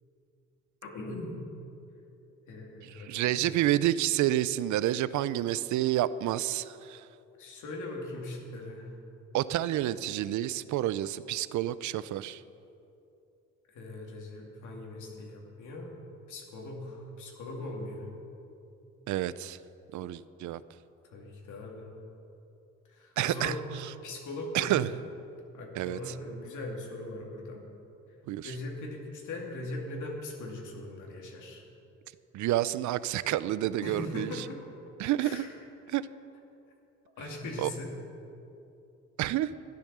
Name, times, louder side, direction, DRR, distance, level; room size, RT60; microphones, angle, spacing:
voice 1, 0.8-1.4 2.5-3.4 7.4-8.9 13.7-15.9 16.3-18.1 21.1-21.9 22.9-23.6 24.0-24.8 25.5-27.6 28.4-31.6 33.8-34.6 35.2-35.5 37.2-37.9, left 2 dB, 75° left, 0 dB, 2.6 m, -40 dB
voice 2, 2.8-7.1 9.3-12.4 19.1-19.6 19.9-20.6 23.2-23.9 24.5-24.9 25.8-26.1 28.3-28.6 32.3-34.5 35.0-35.4 35.9-36.0 37.6-37.7 39.2-39.5, right 13 dB, 75° right, 16 dB, 0.5 m, -29 dB
13.0 x 10.5 x 6.8 m, 2.8 s
cardioid pair, 90°, 30 cm